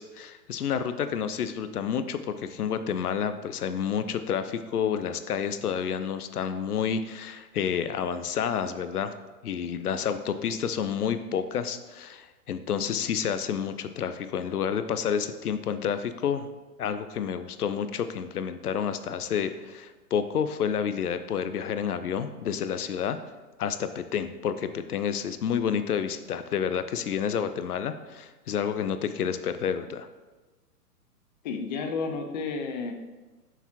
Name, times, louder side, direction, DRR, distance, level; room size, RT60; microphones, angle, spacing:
voice 1, 0.0-9.1 9.4-16.5 16.8-23.2 23.6-30.1, left 7 dB, 70° left, 11 dB, 0.6 m, -29 dB
voice 2, 31.4-32.9, left 4 dB, 30° left, 4 dB, 0.5 m, -31 dB
6.8 x 6.0 x 2.9 m, 1.2 s
figure-of-eight pair, 120°, 47 cm